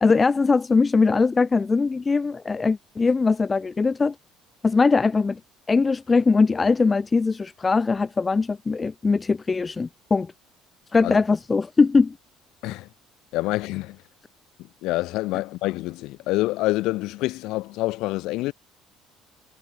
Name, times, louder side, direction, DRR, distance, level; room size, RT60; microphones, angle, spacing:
voice 1, 0.0-4.1 4.6-5.4 5.7-10.3 10.9-12.2, left 4 dB, 25° left, 0.7 m, -21 dB
voice 2, 13.3-14.0 14.6-18.5, left 19 dB, 75° left, 1.8 m, -27 dB
supercardioid pair, 100°, 0 cm